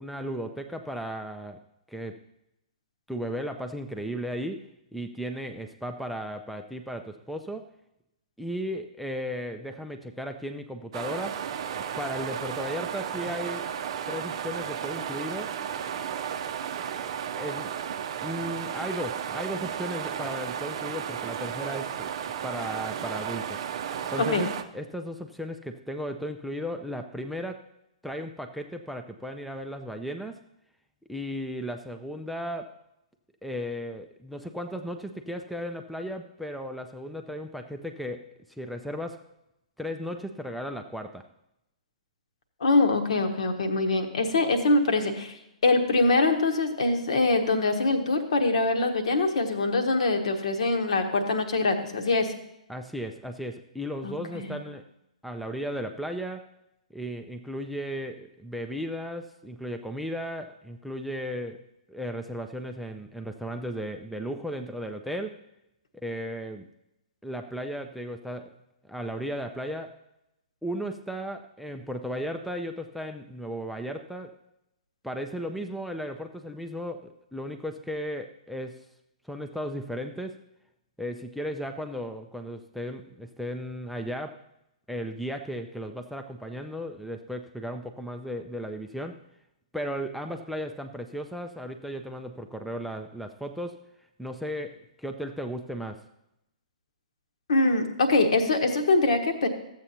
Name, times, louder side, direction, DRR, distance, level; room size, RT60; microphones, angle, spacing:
voice 1, 0.0-1.6 1.9-2.2 3.1-7.7 8.4-11.4 11.8-13.7 14.1-15.5 17.4-17.8 18.2-22.1 22.4-23.6 24.1-27.6 28.0-30.4 31.1-32.8 33.4-39.3 39.8-41.2 52.7-54.8 55.2-56.5 56.9-61.6 61.9-65.4 66.0-66.7 67.2-68.5 68.9-70.0 70.6-74.4 75.0-78.8 79.2-80.4 81.0-84.4 84.9-89.2 89.7-93.8 94.2-96.1, equal, ahead, 5 dB, 0.4 m, -35 dB
sound 1, 10.9-24.6, right 8 dB, 45° right, 0.6 m, -34 dB
voice 2, 42.6-45.3 45.6-52.3 54.0-54.6 97.5-99.5, left 2 dB, 60° left, 6 dB, 1.3 m, -24 dB
14.0 x 7.8 x 2.8 m, 0.85 s
figure-of-eight pair, 115°, 4 cm